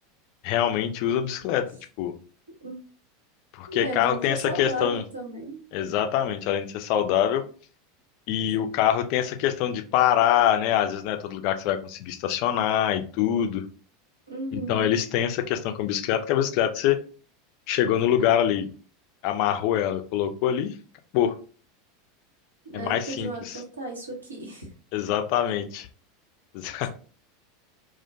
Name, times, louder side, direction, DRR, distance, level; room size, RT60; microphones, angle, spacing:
voice 1, 0.4-1.7 2.0-2.1 3.5-5.0 5.7-7.5 8.3-13.6 14.5-17.0 17.7-18.7 19.2-20.8 21.1-21.4 22.7-23.6 24.9-25.9 26.5-26.9, left 10 dB, 50° left, 7 dB, 0.3 m, -24 dB
voice 2, 3.7-5.6 14.3-14.9 22.6-24.7, right 1 dB, 80° right, 0 dB, 0.7 m, -34 dB
2.4 x 2.1 x 2.6 m, 0.39 s
figure-of-eight pair, 80°, 0 cm